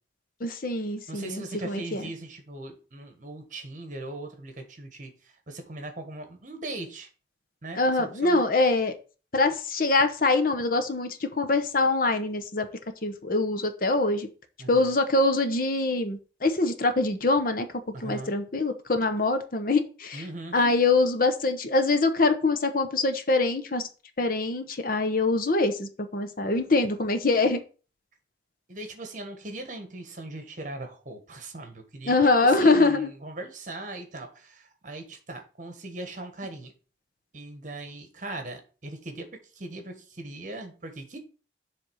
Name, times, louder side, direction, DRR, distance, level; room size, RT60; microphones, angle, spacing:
voice 1, 0.4-2.0 7.8-8.9 9.3-12.7 13.0-14.3 14.7-17.7 18.0-20.2 20.5-23.9 24.2-27.6 32.1-33.1, left 3 dB, 50° left, 0.8 m, -24 dB
voice 2, 1.1-7.1 7.6-8.4 14.6-14.9 17.9-18.3 20.1-20.7 28.7-32.2 32.4-36.7 37.3-41.2, right 2 dB, 45° right, 1.4 m, -39 dB
7.6 x 3.5 x 6.3 m
head